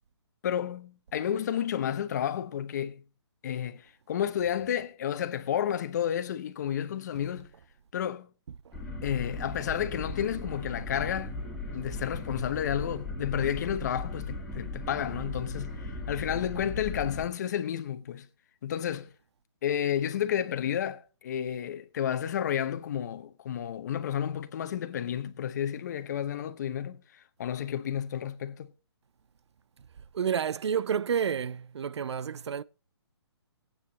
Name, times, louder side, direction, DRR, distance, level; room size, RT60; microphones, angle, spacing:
voice 1, 0.4-3.0 3.4-7.5 7.9-8.3 9.0-11.4 11.7-18.3 18.6-19.1 19.6-28.7, left 9 dB, 40° left, 0.8 m, -31 dB
sound 1, 8.7-17.3, left 2 dB, ahead, 2.4 m, -37 dB
voice 2, 30.1-32.6, right 7 dB, 75° right, 0.5 m, -30 dB
18.0 x 8.8 x 3.1 m
hypercardioid pair, 160°, 14 cm